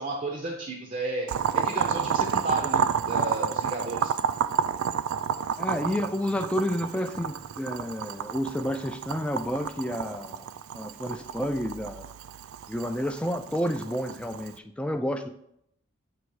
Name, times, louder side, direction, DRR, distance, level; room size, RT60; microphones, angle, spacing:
voice 1, 0.0-4.1, right 2 dB, 35° right, 1 dB, 0.6 m, -33 dB
Boiling, 1.3-14.5, right 7 dB, 80° right, 0.3 m, -30 dB
voice 2, 5.6-10.5 10.7-12.1 12.7-15.3, equal, 5° left, 6 dB, 0.3 m, -30 dB
7.6 x 3.0 x 4.7 m, 0.74 s
head